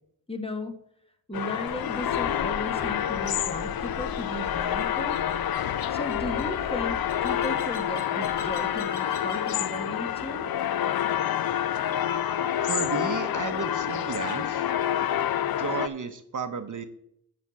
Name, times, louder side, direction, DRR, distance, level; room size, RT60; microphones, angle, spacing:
voice 1, 0.3-0.7 1.3-5.3 5.9-10.5, left 1 dB, 15° left, 6 dB, 1.2 m, -36 dB
sound 1, 1.3-15.9, left 10 dB, 65° left, 0.5 m, -28 dB
sound 2, 1.7-9.7, left 2 dB, 85° left, 2.3 m, -43 dB
voice 2, 12.7-14.7 15.6-16.9, right 6 dB, 50° right, 8 dB, 0.8 m, -33 dB
9.5 x 4.3 x 7.5 m, 0.72 s
wide cardioid pair, 80°, 39 cm